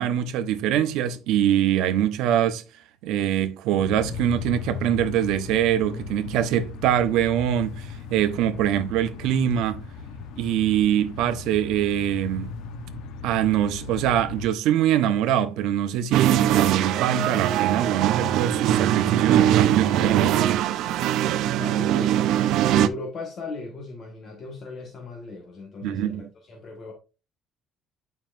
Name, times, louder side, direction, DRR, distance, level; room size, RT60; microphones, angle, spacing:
voice 1, 0.0-2.6 3.0-9.8 10.4-12.5 13.2-20.3 25.8-26.3, right 10 dB, 85° right, 1.0 m, -23 dB
sound 1, 3.8-14.5, left 5 dB, 75° left, 1.0 m, -37 dB
sound 2, 16.1-22.9, right 11 dB, 70° right, 0.5 m, -21 dB
voice 2, 21.4-22.2 22.6-26.9, left 3 dB, 35° left, 1.6 m, -37 dB
9.3 x 5.7 x 2.6 m
cardioid pair, 170°, 0 cm